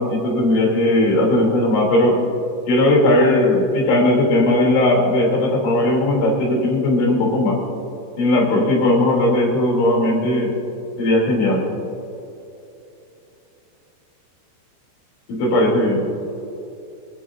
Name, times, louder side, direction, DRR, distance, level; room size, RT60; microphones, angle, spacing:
voice 1, 0.0-2.2 2.7-7.6 8.2-10.5 11.0-11.6 15.3-16.0, left 1 dB, 85° left, -1 dB, 5.6 m, -17 dB
26.5 x 13.0 x 2.7 m, 2.8 s
omnidirectional pair, 5.2 m